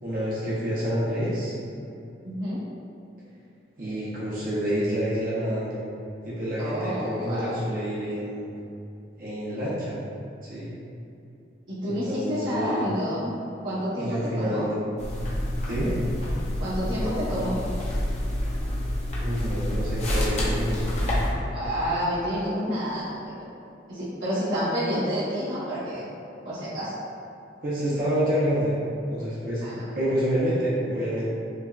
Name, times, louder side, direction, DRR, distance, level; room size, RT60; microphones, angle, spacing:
voice 1, 0.0-1.5 3.8-5.8 6.2-8.5 9.2-10.0 10.4-10.7 11.8-12.9 14.0-14.8 15.7-16.0 19.2-21.1 27.6-28.7 29.1-31.3, equal, 50° right, -9 dB, 0.8 m, -28 dB
voice 2, 2.2-2.6 6.6-7.5 11.7-13.3 13.6-14.6 16.6-17.5 21.5-23.2 23.9-26.0 26.4-26.9 29.6-29.8, equal, 90° right, -13 dB, 1.1 m, -29 dB
sound 1, 15.0-21.3, left 1 dB, 35° left, 0.6 m, -28 dB
5.3 x 2.2 x 2.4 m, 2.7 s
head